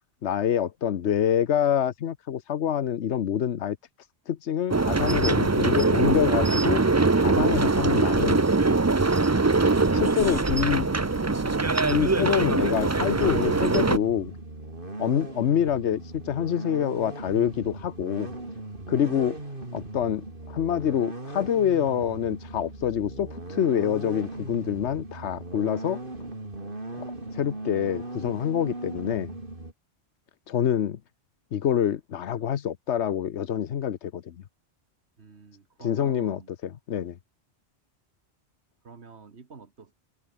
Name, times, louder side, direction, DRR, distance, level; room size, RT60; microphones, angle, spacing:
voice 1, 0.2-3.8 4.3-6.8 7.1-8.4 9.2-9.3 9.7-10.9 11.9-14.3 15.0-18.3 18.9-19.4 19.7-26.0 27.3-29.3 30.5-31.0 31.5-34.3 35.8-37.2, left 9 dB, 90° left, 1.2 m, -26 dB
sound 1, 4.7-14.0, right 3 dB, 20° right, 0.5 m, -22 dB
sound 2, 9.8-29.7, right 2 dB, 50° right, 4.8 m, -38 dB
voice 2, 35.2-36.5 38.8-39.9, right 5 dB, 75° right, 2.1 m, -48 dB
omnidirectional pair, 1.1 m